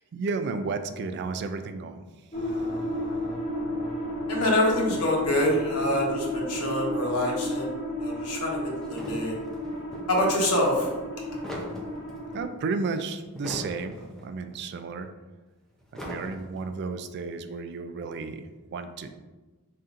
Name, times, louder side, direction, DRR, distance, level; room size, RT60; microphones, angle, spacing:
voice 1, 0.0-2.0 12.3-13.9 14.2-15.1 15.9-19.1, right 4 dB, 50° right, 9 dB, 0.3 m, -33 dB
sound 1, 2.3-12.4, equal, 30° left, 0.9 m, -32 dB
voice 2, 4.3-7.7 8.0-8.6 8.9-9.3 10.1-10.9, left 1 dB, 85° left, -2 dB, 1.1 m, -25 dB
sound 2, 8.8-10.1 11.1-12.4 13.2-14.3 14.5-14.6 15.8-16.8, equal, ahead, 0.5 m, -40 dB
4.1 x 3.7 x 2.5 m, 1.2 s
head